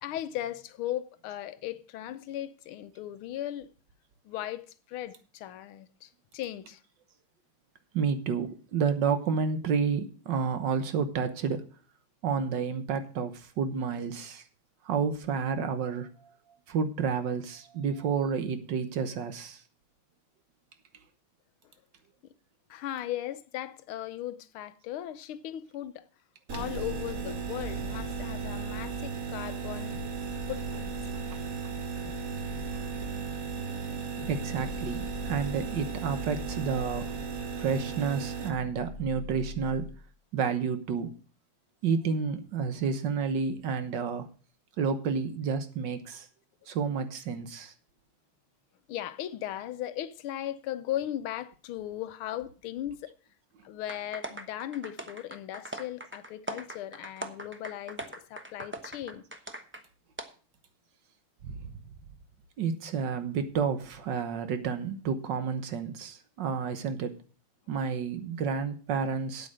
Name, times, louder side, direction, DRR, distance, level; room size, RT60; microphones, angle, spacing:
voice 1, 0.0-3.7 4.2-6.8 22.7-26.0 26.5-30.0 30.5-30.9 48.9-53.1 53.6-59.2, left 12 dB, 90° left, 1.6 m, -37 dB
voice 2, 7.9-11.7 12.2-14.4 14.8-16.1 16.7-19.6 26.5-27.0 30.7-30.8 31.3-31.7 34.3-37.1 37.6-39.9 40.3-41.1 41.8-44.3 44.8-46.3 46.7-47.7 61.4-61.7 62.6-67.1 67.7-69.5, right 6 dB, 65° right, 1.6 m, -30 dB
sound 1, 26.5-38.5, right 5 dB, 45° right, 1.5 m, -36 dB
sound 2, 29.9-31.5 32.0-33.5 34.2-35.8 36.3-37.7 38.5-40.1, left 3 dB, 45° left, 1.6 m, -44 dB
sound 3, 53.9-59.8 60.2-60.3, right 1 dB, 15° right, 0.4 m, -40 dB
8.8 x 8.4 x 6.3 m
omnidirectional pair, 2.3 m